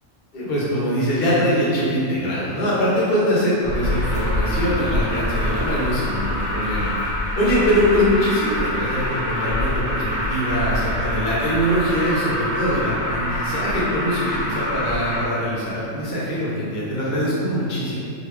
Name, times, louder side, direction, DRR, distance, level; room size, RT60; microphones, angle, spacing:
voice 1, 0.3-18.0, equal, 50° left, -8 dB, 1.1 m, -23 dB
Alarm, 3.6-15.2, left 1 dB, 35° right, 1.4 m, -25 dB
3.8 x 2.6 x 3.2 m, 2.6 s
omnidirectional pair, 1.3 m